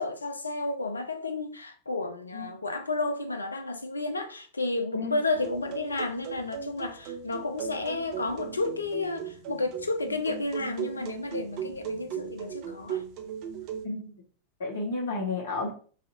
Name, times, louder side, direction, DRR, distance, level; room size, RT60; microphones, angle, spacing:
voice 1, 0.0-13.0, left 2 dB, 80° left, 0.4 m, -32 dB
sound 1, 5.3-13.9, right 7 dB, 45° right, 0.4 m, -38 dB
voice 2, 14.6-15.7, left 3 dB, 60° left, 1.2 m, -32 dB
3.2 x 2.7 x 2.6 m
figure-of-eight pair, 90°, 0 cm